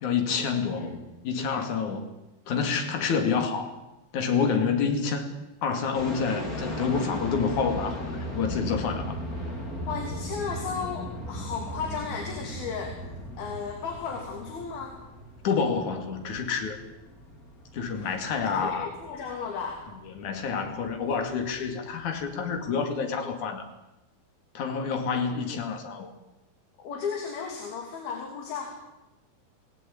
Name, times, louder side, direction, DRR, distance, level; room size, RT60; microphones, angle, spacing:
voice 1, 0.0-2.1 2.5-3.7 4.1-5.3 5.6-9.2 15.4-16.8 17.7-18.9 20.0-23.6 24.6-26.1, left 5 dB, 55° left, 6 dB, 3.7 m, -28 dB
sound 1, 5.9-22.7, equal, 25° left, 3.9 m, -37 dB
voice 2, 9.9-12.9 13.4-15.0 18.0-18.1 18.5-19.8 26.8-28.7, left 6 dB, 75° left, 2 dB, 4.7 m, -34 dB
28.0 x 18.0 x 8.8 m, 0.96 s
omnidirectional pair, 4.4 m